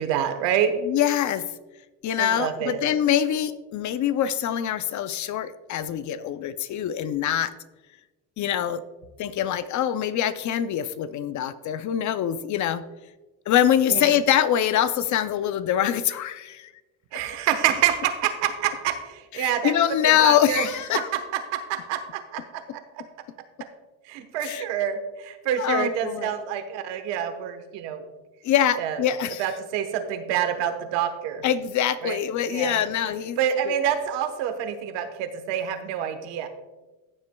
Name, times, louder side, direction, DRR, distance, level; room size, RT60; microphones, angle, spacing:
voice 1, 0.0-0.7 2.2-2.8 13.9-14.1 17.1-19.7 20.2-20.7 20.9-21.0 21.5-22.6 24.1-28.0 28.8-29.0 29.4-31.4 32.0-32.7 33.4-36.5, right 9 dB, 90° right, 8 dB, 1.2 m, -27 dB
voice 2, 0.8-1.5 2.0-7.5 8.4-8.8 9.2-12.8 13.5-16.7 19.3-21.1 24.4-24.6 25.6-26.4 28.4-29.4 31.4-33.4 33.6-33.7, left 10 dB, 45° left, 13 dB, 0.5 m, -24 dB
15.0 x 7.4 x 2.2 m, 1.1 s
cardioid pair, 135°, 41 cm